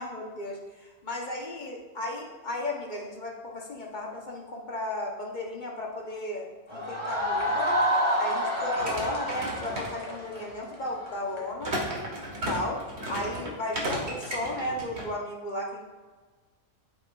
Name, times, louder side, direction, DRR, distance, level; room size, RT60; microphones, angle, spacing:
voice 1, 0.0-7.8 8.2-11.8 12.4-12.8 13.1-15.8, left 1 dB, 40° left, -1 dB, 1.2 m, -35 dB
sound 1, 6.7-11.4, equal, 20° left, 1.8 m, -28 dB
sound 2, 8.7-10.4 11.6-15.1, equal, 55° right, 2.0 m, -34 dB
12.0 x 5.7 x 2.5 m, 1.4 s
omnidirectional pair, 1.3 m